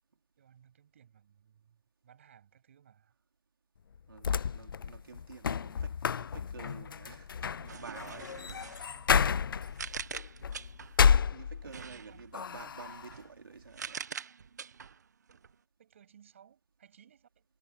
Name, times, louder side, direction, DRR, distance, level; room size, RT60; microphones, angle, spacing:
voice 1, 0.4-3.1 11.6-12.3 15.8-17.4, right 9 dB, 35° right, 7.1 m, -61 dB
sound 1, 3.9-11.9 12.3-13.1, left 7 dB, 75° left, 0.4 m, -30 dB
voice 2, 4.1-8.4 8.8-9.0 11.3-14.1, right 5 dB, 85° right, 3.7 m, -50 dB
sound 2, 7.7-11.1 11.6-15.6, right 6 dB, 50° right, 1.2 m, -45 dB
hypercardioid pair, 175°, 11 cm